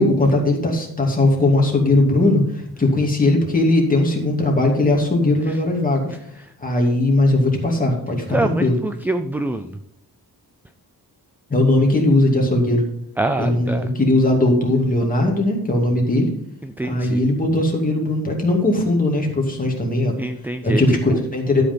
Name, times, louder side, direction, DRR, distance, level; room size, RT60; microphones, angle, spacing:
voice 1, 0.0-2.4 2.8-6.1 6.6-8.7 11.5-12.8 13.4-16.3 16.8-20.1 20.6-21.6, left 2 dB, 20° left, 0 dB, 2.4 m, -18 dB
voice 2, 8.3-9.8 13.2-13.9 16.6-17.3 20.2-21.2, right 2 dB, 5° right, 8 dB, 0.3 m, -25 dB
12.0 x 5.8 x 5.4 m, 0.73 s
wide cardioid pair, 170°, 40 cm